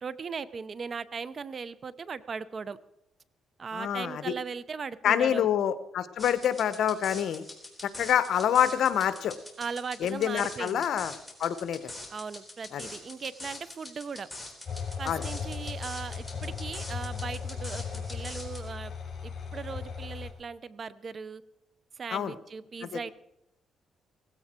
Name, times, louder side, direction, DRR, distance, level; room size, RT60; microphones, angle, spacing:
voice 1, 0.0-2.8 3.6-5.5 9.6-10.9 12.1-14.3 15.0-18.9 19.2-21.4 22.0-23.1, right 5 dB, 45° right, 18 dB, 0.7 m, -38 dB
voice 2, 3.7-4.3 5.0-7.4 7.8-9.3 10.0-11.1 11.4-11.9 12.7-12.9 15.0-15.2 22.1-22.4 22.9-23.0, left 9 dB, 70° left, 14 dB, 1.0 m, -27 dB
sound 1, 6.2-18.7, left 2 dB, 5° left, 3.7 m, -44 dB
sound 2, 14.7-20.3, left 6 dB, 35° left, 4.9 m, -37 dB
16.5 x 16.0 x 4.4 m, 0.85 s
cardioid pair, 90°, 0 cm